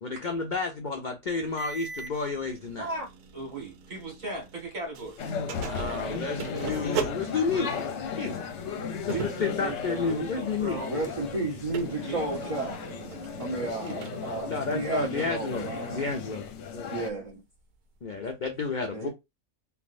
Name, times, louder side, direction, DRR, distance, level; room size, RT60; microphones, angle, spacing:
voice 1, 0.0-2.9 5.7-7.8 8.1-8.4 9.1-10.8 14.4-16.4 16.7-16.9 18.0-19.1, left 4 dB, 85° left, 0.4 m, -31 dB
sound 1, 1.6-4.7 4.9-16.1, right 5 dB, 85° right, 1.1 m, -41 dB
voice 2, 3.3-5.2 9.0-11.0 11.9-12.5, right 3 dB, 65° right, 1.7 m, -37 dB
sound 2, 5.2-17.1, left 5 dB, 60° left, 0.8 m, -36 dB
voice 3, 10.8-12.8 13.4-16.1 16.9-17.4 18.9-19.1, right 2 dB, 30° right, 0.7 m, -32 dB
3.3 x 2.4 x 2.4 m
omnidirectional pair, 1.6 m